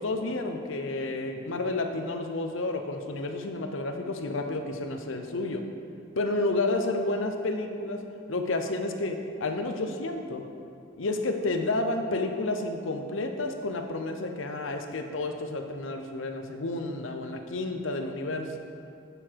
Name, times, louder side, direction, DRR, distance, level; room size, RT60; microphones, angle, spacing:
voice 1, 0.0-5.6 6.2-8.0 8.3-10.4 11.0-18.6, left 2 dB, 75° left, 5 dB, 0.8 m, -30 dB
9.8 x 6.8 x 4.6 m, 2.4 s
head